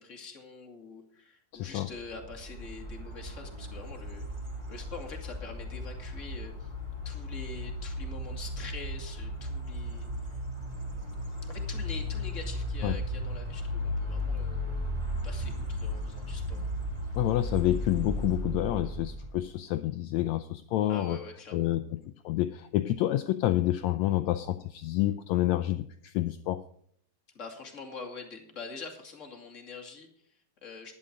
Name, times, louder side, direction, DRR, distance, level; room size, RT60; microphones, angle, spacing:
voice 1, 0.0-4.3 4.7-6.7 7.0-10.1 10.3-10.4 11.4-16.7 20.9-21.8 27.3-30.9, left 4 dB, 30° left, 2 dB, 1.9 m, -45 dB
voice 2, 1.5-1.9 12.8-13.0 17.1-21.2 21.5-22.0 22.2-26.6, left 14 dB, 90° left, 11 dB, 1.5 m, -28 dB
sound 1, 1.9-19.5, left 1 dB, 10° right, 2.8 m, -35 dB
11.5 x 9.9 x 5.1 m, 0.62 s
omnidirectional pair, 3.8 m